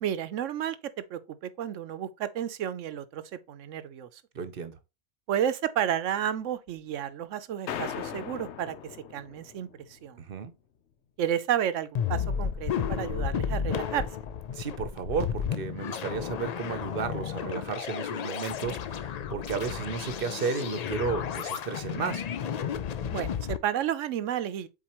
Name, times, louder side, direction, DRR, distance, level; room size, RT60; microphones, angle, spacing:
voice 1, 0.0-0.8 1.1-4.2 5.3-8.7 9.1-10.2 11.2-14.1 23.1-24.7, right 10 dB, 85° right, 1.0 m, -31 dB
voice 2, 4.3-4.8 10.2-10.5 14.5-22.3, right 5 dB, 55° right, 0.9 m, -33 dB
sound 1, 7.7-10.1, left 9 dB, 70° left, 1.0 m, -38 dB
sound 2, 11.9-23.6, left 8 dB, 85° left, 0.3 m, -32 dB
7.6 x 4.2 x 3.0 m
omnidirectional pair, 1.2 m